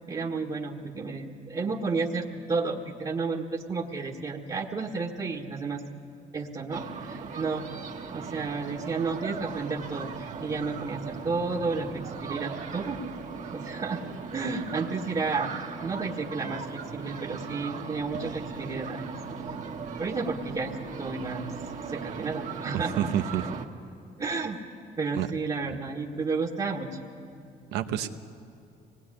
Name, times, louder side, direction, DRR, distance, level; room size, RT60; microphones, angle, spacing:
voice 1, 0.1-5.8 6.3-7.7 8.1-13.0 13.5-14.0 14.3-15.5 15.8-19.1 20.0-21.5 21.9-23.1 24.2-24.6 25.0-26.9, right 4 dB, 30° right, -2 dB, 1.7 m, -32 dB
sound 1, 6.7-23.7, right 5 dB, 45° right, 1.7 m, -38 dB
voice 2, 22.7-23.4 25.1-25.3 27.7-28.1, right 11 dB, 90° right, 8 dB, 1.1 m, -28 dB
25.0 x 19.5 x 10.0 m, 2.5 s
cardioid pair, 110°, 17 cm